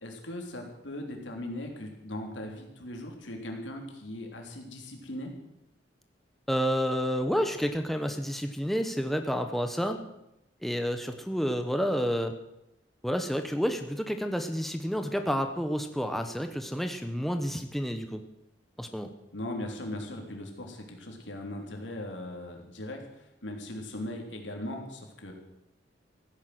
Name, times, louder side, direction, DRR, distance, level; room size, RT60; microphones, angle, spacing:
voice 1, 0.0-5.3 19.3-25.3, left 1 dB, 80° left, 2 dB, 3.4 m, -39 dB
voice 2, 6.5-10.0 10.6-12.3 13.0-18.2 18.8-19.1, equal, ahead, 6 dB, 1.0 m, -30 dB
15.5 x 10.5 x 7.9 m, 0.86 s
head